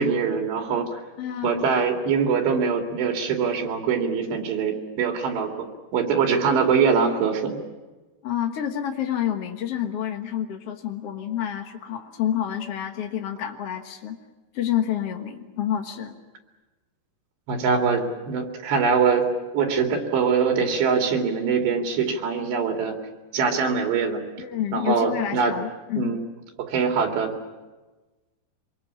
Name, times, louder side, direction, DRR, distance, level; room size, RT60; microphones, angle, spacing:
voice 1, 0.0-1.0 1.4-7.6 17.5-23.0 23.3-24.2 24.7-25.5 26.0-26.3 26.6-27.4, right 5 dB, 75° right, 3 dB, 4.5 m, -23 dB
voice 2, 1.2-1.6 8.2-14.2 14.5-16.2 24.4-26.1, left 10 dB, 80° left, 4 dB, 1.3 m, -28 dB
25.5 x 21.5 x 8.6 m, 1.2 s
omnidirectional pair, 5.1 m